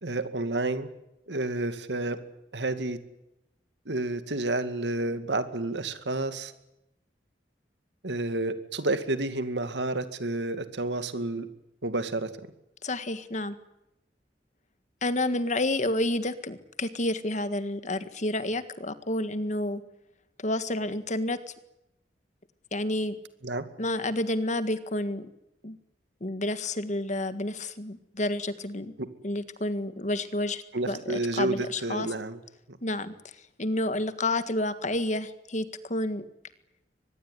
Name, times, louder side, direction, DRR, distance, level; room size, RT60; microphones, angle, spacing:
voice 1, 0.0-0.9 1.3-2.2 2.5-3.0 3.9-6.5 8.0-11.5 11.8-12.3 23.4-23.6 29.0-29.1 30.7-32.4 32.7-32.8, right 2 dB, 85° right, 11 dB, 2.2 m, -30 dB
voice 2, 12.8-13.6 15.0-19.8 20.4-21.4 22.7-23.2 23.8-25.3 25.6-25.8 26.2-28.9 29.2-32.1 32.8-33.3 33.6-36.2, left 1 dB, 45° left, 12 dB, 1.8 m, -30 dB
24.0 x 20.5 x 9.8 m, 0.87 s
head